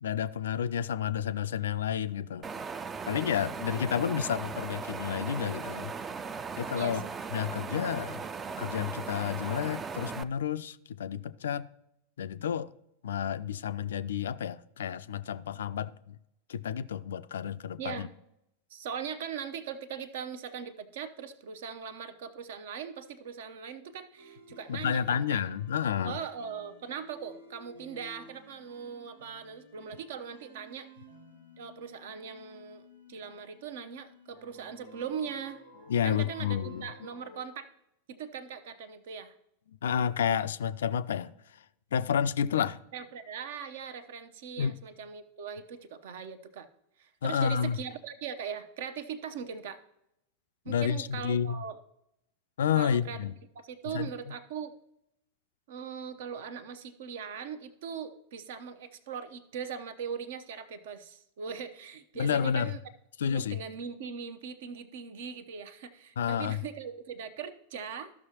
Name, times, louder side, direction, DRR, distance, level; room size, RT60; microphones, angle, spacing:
voice 1, 0.0-2.5 3.1-5.9 6.6-7.0 7.3-8.2 8.6-11.7 12.2-12.7 13.0-16.2 16.5-18.1 24.7-26.2 35.9-36.9 39.8-41.3 41.9-42.8 44.6-44.8 47.2-47.8 50.7-51.6 52.6-53.3 53.9-54.1 62.2-62.7 63.2-63.6 66.2-66.6, left 8 dB, 65° left, 0.3 m, -30 dB
Wind, 2.4-10.2, right 5 dB, 20° right, 0.4 m, -38 dB
voice 2, 6.7-7.1 17.8-18.1 18.7-25.4 26.0-30.9 31.6-32.8 33.1-35.6 36.0-37.7 38.1-39.3 42.9-46.7 47.0-49.8 50.6-51.8 52.8-53.2 53.5-54.7 55.7-62.8 63.3-68.1, right 7 dB, 55° right, 0.7 m, -40 dB
sound 1, 24.2-37.4, left 1 dB, 80° right, 1.6 m, -54 dB
14.0 x 6.2 x 2.9 m
figure-of-eight pair, 90°, 0 cm